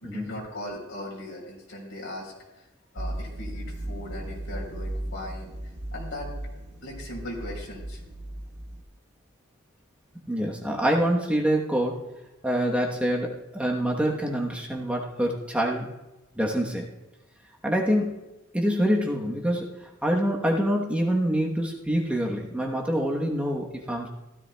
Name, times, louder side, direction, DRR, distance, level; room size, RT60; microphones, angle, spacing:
voice 1, 0.0-2.3 2.9-5.5 5.9-6.3 6.8-8.0, left 1 dB, 70° left, -1 dB, 3.8 m, -38 dB
sound 1, 3.0-8.8, right 1 dB, 60° right, 0.9 m, -36 dB
voice 2, 10.3-12.0 12.4-15.9 16.3-16.9 17.6-18.2 18.5-24.1, equal, 5° right, -1 dB, 1.0 m, -26 dB
15.5 x 13.0 x 2.2 m, 1.0 s
head